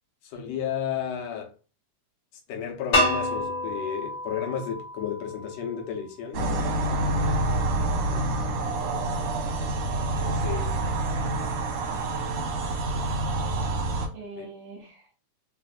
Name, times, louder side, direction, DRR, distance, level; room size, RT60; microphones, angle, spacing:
voice 1, 0.2-1.5 2.5-6.4 10.2-10.7 14.4-14.5, left 8 dB, 70° left, 2.0 m, -32 dB
sound 1, 2.9-5.8, left 1 dB, 40° left, 1.3 m, -28 dB
sound 2, 6.3-14.1, right 2 dB, 70° right, 1.9 m, -27 dB
voice 2, 7.9-8.4 11.9-12.0 14.1-15.2, right 4 dB, 55° right, 2.0 m, -44 dB
4.7 x 2.5 x 2.5 m
omnidirectional pair, 3.4 m